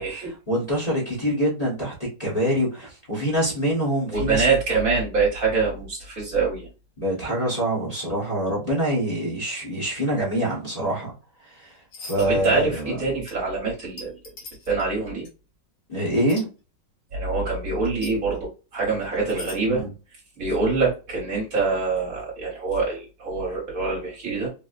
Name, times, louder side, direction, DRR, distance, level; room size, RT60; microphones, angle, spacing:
voice 1, 0.0-1.9 2.2-4.4 7.0-11.1 11.4-13.0 15.9-16.5 19.7-19.9, equal, 30° left, 0.9 m, -25 dB
voice 2, 4.1-6.7 12.2-14.1 14.7-15.3 17.1-19.8 20.4-24.5, right 4 dB, 55° right, 1.5 m, -25 dB
sound 1, 11.9-12.5 12.7-13.0 13.3-13.4 14.0-14.8 15.2-15.3 16.3-16.4 17.8-18.1 19.1-19.6, left 3 dB, 85° left, 1.7 m, -40 dB
4.0 x 2.1 x 2.4 m
omnidirectional pair, 1.9 m